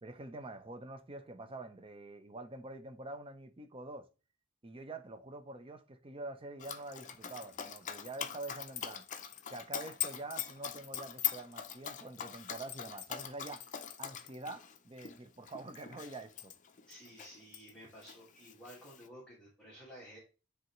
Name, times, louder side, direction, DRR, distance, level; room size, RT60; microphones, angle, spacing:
voice 1, 0.0-4.1 4.6-9.1 9.5-13.6 14.0-16.5, right 2 dB, 30° right, 0.6 m, -46 dB
Dog, 6.6-17.7 18.0-19.1, left 9 dB, 40° left, 0.5 m, -42 dB
voice 2, 16.9-20.2, equal, 5° left, 2.0 m, -53 dB
10.0 x 3.4 x 3.1 m
head